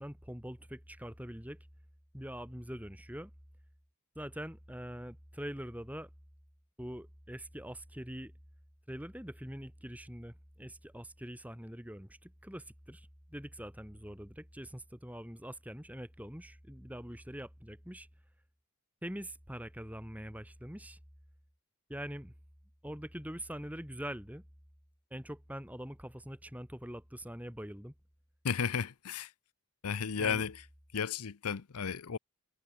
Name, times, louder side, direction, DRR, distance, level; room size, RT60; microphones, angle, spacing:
voice 1, 0.0-1.6 2.1-3.3 4.1-6.1 6.8-8.3 8.9-18.1 19.0-21.0 21.9-22.3 22.8-24.4 25.1-27.9 30.2-30.4, equal, 5° right, 4.5 m, -44 dB
voice 2, 28.4-29.3 29.8-30.5 30.9-32.2, left 6 dB, 85° left, 0.7 m, -33 dB
head